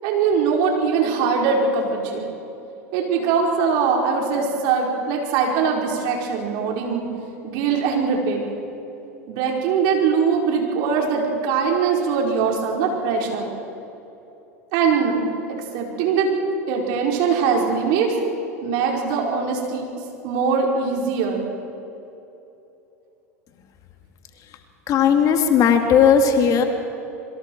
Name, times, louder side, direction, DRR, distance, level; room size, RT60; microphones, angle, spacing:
voice 1, 0.0-2.3 2.9-7.1 7.4-8.5 9.3-13.5 14.7-15.2 15.5-16.3 16.7-18.1 18.6-19.9 20.2-21.4, right 5 dB, 55° right, 0 dB, 4.8 m, -21 dB
voice 2, 24.9-26.6, left 7 dB, 45° left, 5 dB, 2.5 m, -16 dB
26.0 x 23.5 x 4.7 m, 2.9 s
hypercardioid pair, 90°, 8 cm